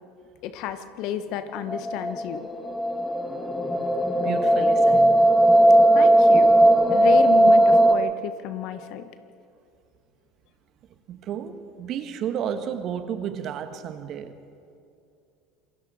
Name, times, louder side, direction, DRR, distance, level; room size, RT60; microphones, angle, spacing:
voice 1, 0.4-2.5 5.9-6.5 6.9-9.1, left 10 dB, 60° left, 10 dB, 1.4 m, -31 dB
sound 1, 1.5-7.9, right 1 dB, 10° left, 2.0 m, -18 dB
voice 2, 4.2-5.2 11.1-14.4, right 8 dB, 50° right, 9 dB, 1.7 m, -32 dB
27.0 x 22.5 x 4.4 m, 2.5 s
hypercardioid pair, 75°, 0 cm